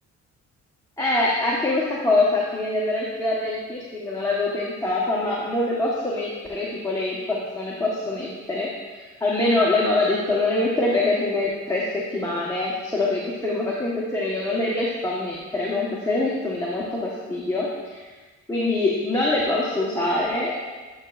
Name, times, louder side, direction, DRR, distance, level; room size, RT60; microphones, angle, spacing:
voice 1, 1.0-17.7 17.9-18.1 18.5-20.6, left 2 dB, 10° left, -5 dB, 1.2 m, -24 dB
11.5 x 6.1 x 2.5 m, 1.3 s
cardioid pair, 90°, 30 cm